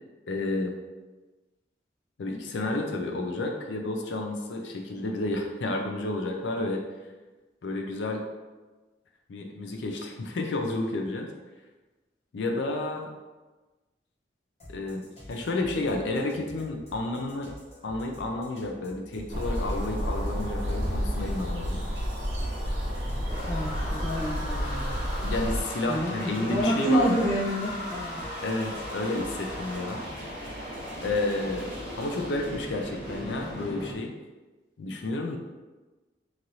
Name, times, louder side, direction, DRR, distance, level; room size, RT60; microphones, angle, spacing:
voice 1, 0.3-0.7 2.2-6.8 7.6-8.3 9.3-11.3 12.3-13.1 14.7-17.5 17.8-21.8 25.2-27.1 28.4-30.1 31.0-31.7 32.0-34.1 34.8-35.4, left 2 dB, 90° left, 3 dB, 0.4 m, -31 dB
sound 1, 14.6-32.7, equal, 35° left, 1.0 m, -48 dB
sound 2, 19.3-25.6, equal, 90° right, 0.7 m, -30 dB
sound 3, 22.8-33.9, equal, 5° right, 1.1 m, -38 dB
voice 2, 23.4-24.8 25.9-26.1 26.4-28.2, right 1 dB, 15° left, -10 dB, 0.5 m, -27 dB
3.1 x 2.5 x 2.7 m, 1.2 s
head